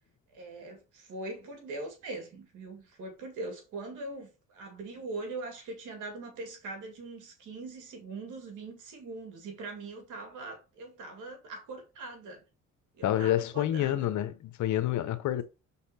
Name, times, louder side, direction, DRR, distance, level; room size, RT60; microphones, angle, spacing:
voice 1, 0.3-12.4 13.0-14.1, right 2 dB, 85° right, 2.5 m, -42 dB
voice 2, 13.0-15.4, left 12 dB, 70° left, 0.8 m, -28 dB
5.6 x 4.2 x 4.2 m
cardioid pair, 90°, 30 cm